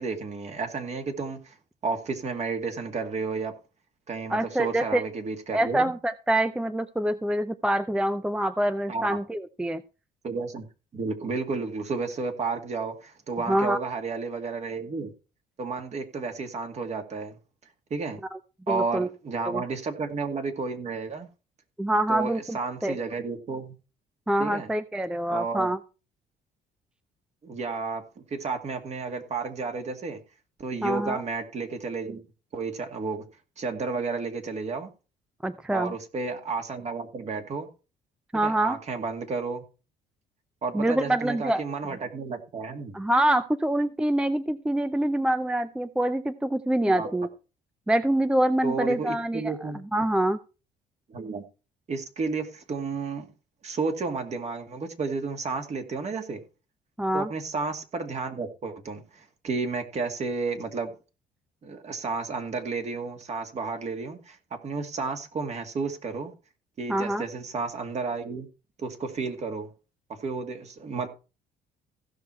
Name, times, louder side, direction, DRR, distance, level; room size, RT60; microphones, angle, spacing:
voice 1, 0.0-1.6 1.8-3.5 4.1-5.9 8.9-9.2 10.2-10.7 10.9-15.1 15.6-17.4 17.9-18.2 18.7-21.3 22.1-23.7 24.4-24.7 25.3-25.7 27.4-30.2 30.6-32.2 32.5-33.2 33.6-34.9 35.7-37.7 38.4-39.6 40.6-43.0 46.9-47.1 48.6-49.8 51.1-51.4 51.9-53.3 53.6-56.4 57.1-60.9 61.6-64.4 64.6-66.3 66.8-68.5 68.8-69.7 70.2-71.1, right 4 dB, 40° right, 2.2 m, -32 dB
voice 2, 4.3-5.0 5.5-9.8 13.5-13.8 18.7-19.1 19.5-19.6 21.8-22.6 22.8-23.0 24.3-25.8 30.8-31.2 35.4-35.9 38.3-38.8 40.7-41.6 42.9-47.3 47.9-50.4 57.0-57.3 66.9-67.2, right 1 dB, 5° right, 0.5 m, -25 dB
15.5 x 6.2 x 4.4 m
cardioid pair, 110°, 17 cm